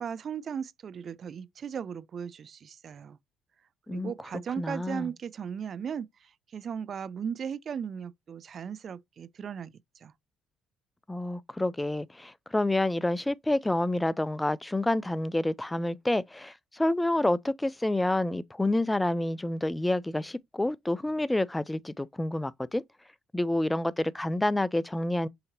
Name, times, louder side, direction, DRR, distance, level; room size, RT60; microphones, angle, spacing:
voice 1, 0.0-3.2 3.9-6.1 6.5-9.7 10.0-10.1, right 7 dB, 50° right, 0.4 m, -36 dB
voice 2, 4.6-5.1 11.1-22.8 23.3-25.3, left 1 dB, 10° left, 0.4 m, -28 dB
6.6 x 2.8 x 2.7 m
supercardioid pair, 70°, 0 cm